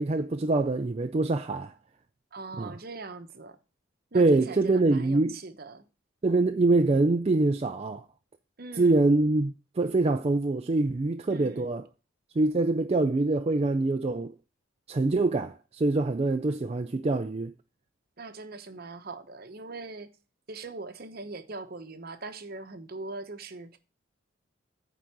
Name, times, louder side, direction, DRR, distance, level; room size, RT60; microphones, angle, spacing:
voice 1, 0.0-1.7 2.6-2.7 4.1-5.4 6.2-8.0 8.8-11.8 12.4-14.3 14.9-17.5, right 2 dB, 30° right, 0.4 m, -25 dB
voice 2, 2.3-3.6 4.1-5.9 8.6-9.0 11.3-11.7 18.2-20.1 20.5-23.8, right 3 dB, 45° right, 0.9 m, -41 dB
9.1 x 3.9 x 7.0 m
head